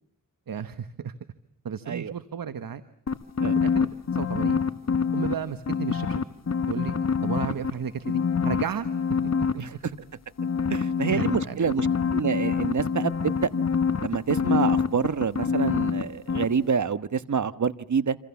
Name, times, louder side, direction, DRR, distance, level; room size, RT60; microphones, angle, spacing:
voice 1, 0.5-1.1 1.6-2.8 3.6-4.6 5.1-6.2 6.7-6.9 7.2-8.9 9.4-9.8 11.1-11.7, right 7 dB, 80° right, 12 dB, 1.3 m, -33 dB
sound 1, 3.1-5.3 5.7-7.7 8.0-9.5 10.4-16.0 16.3-16.4, left 6 dB, 50° left, 1.5 m, -25 dB
voice 2, 10.7-11.9 12.1-13.5 14.0-18.2, right 6 dB, 55° right, 14 dB, 1.3 m, -27 dB
27.5 x 27.0 x 7.1 m, 0.64 s
cardioid pair, 65°, 34 cm